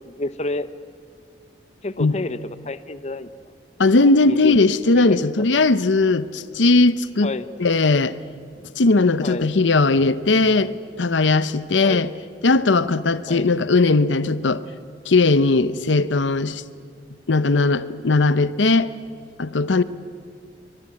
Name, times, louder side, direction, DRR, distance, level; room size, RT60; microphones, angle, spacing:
voice 1, 0.1-0.7 1.8-3.3 4.2-4.6 4.9-5.2 7.2-7.4 9.2-9.5 11.8-12.0 13.3-13.5, left 2 dB, 35° left, 0.8 m, -29 dB
voice 2, 3.8-7.3 7.6-8.2 8.8-10.7 11.0-12.1 12.4-14.6 15.1-16.6 17.3-18.9 19.4-19.8, left 3 dB, 85° left, 0.8 m, -18 dB
24.0 x 21.0 x 9.7 m
head